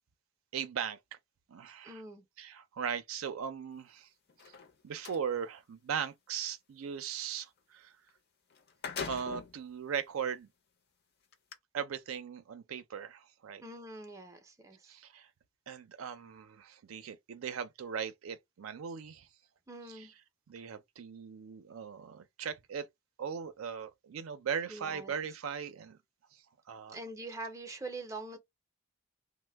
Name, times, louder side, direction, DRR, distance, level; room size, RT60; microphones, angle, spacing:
voice 1, 0.5-1.0 1.5-2.0 2.4-4.1 4.4-4.5 4.8-7.9 9.1-10.5 11.7-13.6 14.9-15.3 15.7-19.3 20.5-22.9 23.2-26.0 26.7-27.0, right 7 dB, 85° right, 0.4 m, -38 dB
voice 2, 1.8-2.2 13.6-15.0 19.7-20.1 24.7-25.1 26.9-28.4, right 2 dB, 15° right, 0.5 m, -44 dB
sound 1, 4.3-5.2 8.1-8.2 8.5-9.6 10.3-10.4 11.3-11.5, left 5 dB, 50° left, 0.5 m, -41 dB
2.9 x 2.0 x 3.3 m
head